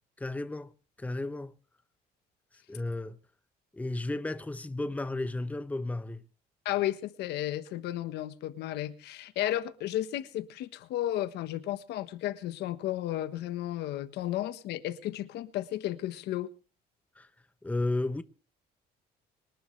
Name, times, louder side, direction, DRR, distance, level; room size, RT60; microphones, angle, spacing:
voice 1, 0.2-0.7 1.0-1.5 2.7-3.2 3.7-6.2 17.2-17.3 17.6-18.2, left 2 dB, 10° left, 0.9 m, -33 dB
voice 2, 6.6-16.5, left 13 dB, 80° left, 1.3 m, -33 dB
25.5 x 11.5 x 3.3 m
cardioid pair, 110°, 17 cm